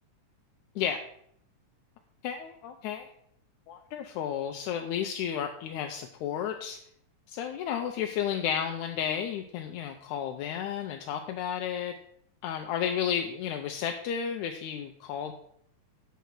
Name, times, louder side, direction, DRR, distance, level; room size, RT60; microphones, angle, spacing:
voice 1, 2.2-3.1 3.7-6.8 7.3-11.9 12.4-15.3, left 8 dB, 80° left, 4 dB, 1.9 m, -32 dB
9.2 x 6.9 x 4.6 m, 0.69 s
omnidirectional pair, 3.7 m